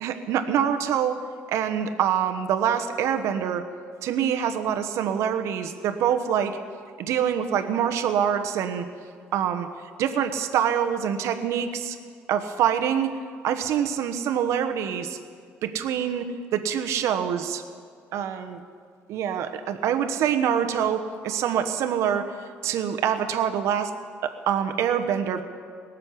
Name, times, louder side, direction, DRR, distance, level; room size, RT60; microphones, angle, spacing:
voice 1, 0.0-1.2 1.5-3.6 4.0-6.6 7.0-8.9 9.3-9.7 10.0-12.0 12.3-13.2 13.4-15.2 15.6-17.6 18.1-18.6 19.1-22.3 22.6-23.9 24.2-25.4, right 8 dB, 70° right, 7 dB, 1.1 m, -25 dB
19.0 x 7.5 x 9.7 m, 2.1 s
supercardioid pair, 80°, 5 cm